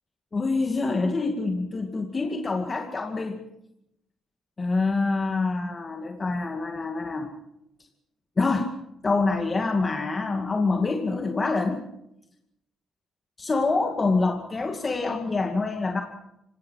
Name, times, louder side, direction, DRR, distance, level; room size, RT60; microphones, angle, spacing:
voice 1, 0.3-3.4 4.6-7.3 8.4-8.7 9.0-11.9 13.4-16.0, left 3 dB, 30° left, 4 dB, 2.3 m, -26 dB
26.5 x 17.5 x 7.6 m, 0.83 s
cardioid pair, 90°, 0 cm